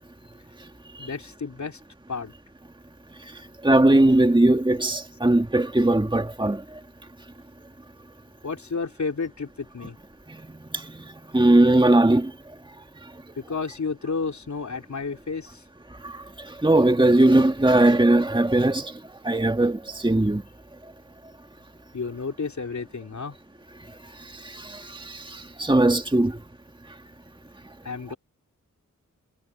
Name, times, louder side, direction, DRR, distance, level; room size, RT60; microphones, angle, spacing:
voice 1, 1.0-1.8 2.1-2.3 8.4-10.0 13.4-15.6 21.9-23.4 27.8-28.2, left 4 dB, 60° left, 3.5 m, -31 dB
voice 2, 3.6-6.6 11.3-12.3 16.6-18.9 19.2-20.4 25.6-26.3, right 1 dB, 15° right, 1.9 m, -18 dB
cardioid pair, 50°, 32 cm